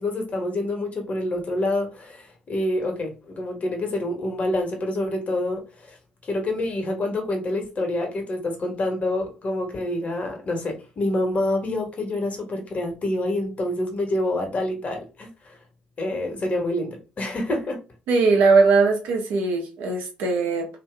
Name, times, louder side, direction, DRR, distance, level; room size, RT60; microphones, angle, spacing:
voice 1, 0.0-6.0 6.2-15.6 16.0-17.8, left 1 dB, 40° left, 1.4 m, -27 dB
voice 2, 18.1-20.7, right 4 dB, 65° right, 1.0 m, -20 dB
2.9 x 2.6 x 3.4 m
figure-of-eight pair, 50°, 4 cm